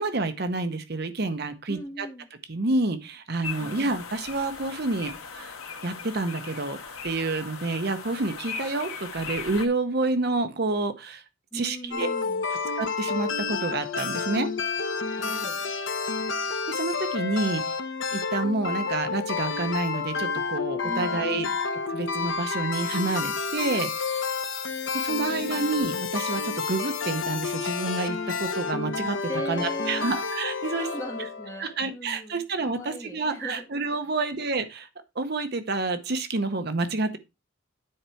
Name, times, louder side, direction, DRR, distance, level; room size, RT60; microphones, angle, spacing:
voice 1, 0.0-2.1 2.5-5.5 5.8-6.8 7.0-11.2 11.5-12.1 12.8-14.5 16.7-17.8 18.1-21.5 21.9-24.3 24.9-29.2 29.5-30.9 31.6-34.9 35.1-37.2, right 3 dB, 50° right, 0.7 m, -29 dB
voice 2, 1.7-2.3 3.6-4.0 11.5-12.5 15.1-15.7 20.8-21.6 25.1-25.6 29.3-30.2 30.8-33.7, left 1 dB, 15° left, 1.6 m, -39 dB
sound 1, 3.4-9.7, left 5 dB, 80° left, 1.4 m, -38 dB
sound 2, 11.9-31.8, left 5 dB, 60° left, 0.9 m, -30 dB
9.5 x 4.5 x 4.5 m
head